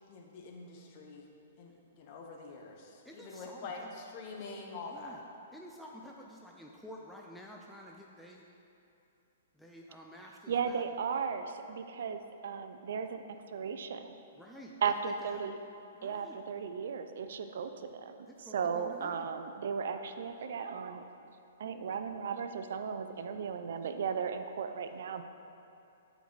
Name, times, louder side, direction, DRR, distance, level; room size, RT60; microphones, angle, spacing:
voice 1, 0.1-1.2 1.6-5.2, left 3 dB, 40° left, 0 dB, 1.1 m, -45 dB
voice 2, 3.0-3.9 4.9-5.2 5.5-8.5 9.6-10.8 14.3-15.4 15.9-16.4 18.3-19.3, equal, ahead, -2 dB, 0.5 m, -50 dB
voice 3, 10.5-13.2 13.5-14.2 14.8-15.5 16.0-21.1 21.6-25.2, right 6 dB, 70° right, 8 dB, 0.5 m, -36 dB
12.0 x 4.6 x 4.1 m, 2.8 s
hypercardioid pair, 145°, 0 cm